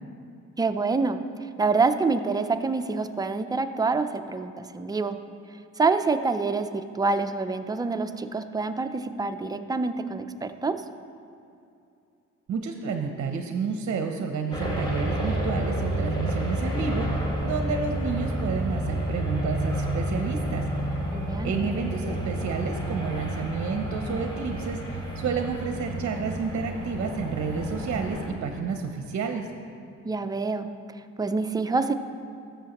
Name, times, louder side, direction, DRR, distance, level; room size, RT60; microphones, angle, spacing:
voice 1, 0.6-1.2 1.6-5.2 5.8-10.8 21.1-21.5 30.0-30.7 31.2-31.9, right 4 dB, 15° right, 8 dB, 0.4 m, -26 dB
voice 2, 12.5-17.1 17.4-20.7 21.4-29.5, right 5 dB, 50° right, 5 dB, 0.6 m, -30 dB
sound 1, 14.5-28.3, right 1 dB, 15° left, 1.6 m, -30 dB
13.0 x 7.0 x 2.9 m, 2.6 s
cardioid pair, 90°, 30 cm